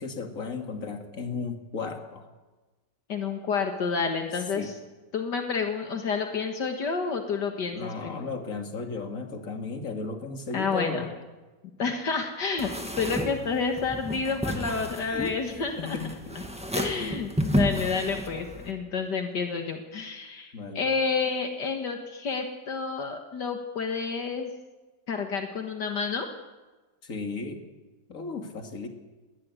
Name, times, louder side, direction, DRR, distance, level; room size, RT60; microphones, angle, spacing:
voice 1, 0.0-2.3 4.5-4.7 7.7-11.1 14.9-15.4 15.8-16.4 17.0-17.2 20.5-20.9 27.0-27.6 28.1-28.9, left 4 dB, 50° left, 5 dB, 2.7 m, -35 dB
voice 2, 3.1-4.8 5.1-8.2 10.5-11.1 11.8-16.0 16.7-24.5 25.1-26.3, left 5 dB, 70° left, 4 dB, 2.3 m, -29 dB
sound 1, 12.6-18.7, equal, 5° right, 2.0 m, -31 dB
20.5 x 18.5 x 9.7 m, 1.2 s
omnidirectional pair, 1.9 m